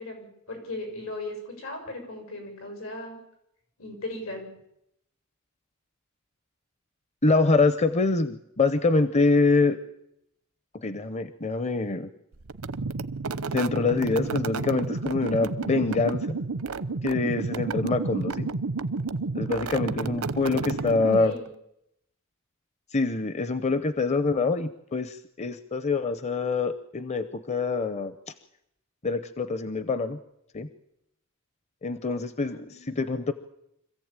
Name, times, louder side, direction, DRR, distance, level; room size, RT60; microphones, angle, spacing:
voice 1, 0.0-3.2 3.8-4.5 20.8-21.5 32.5-32.9, left 2 dB, 80° left, 4 dB, 7.1 m, -37 dB
voice 2, 7.2-9.8 10.7-12.1 13.5-16.4 17.0-18.5 19.3-21.3 22.9-28.3 29.0-30.2 30.5-30.7 31.8-33.3, left 3 dB, 30° left, 11 dB, 0.8 m, -25 dB
sound 1, 12.5-21.5, right 3 dB, 90° right, 0.8 m, -31 dB
26.0 x 15.0 x 8.9 m, 0.82 s
head